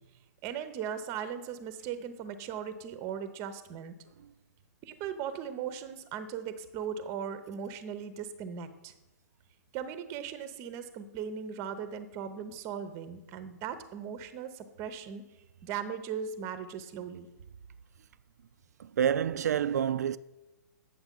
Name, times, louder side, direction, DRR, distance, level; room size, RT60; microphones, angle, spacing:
voice 1, 0.4-3.9 4.8-8.9 9.7-15.2 15.6-17.3, right 7 dB, 30° right, 0.7 m, -38 dB
voice 2, 18.8-20.2, right 9 dB, 65° right, 0.4 m, -28 dB
8.9 x 6.9 x 3.7 m
hypercardioid pair, 125°, 9 cm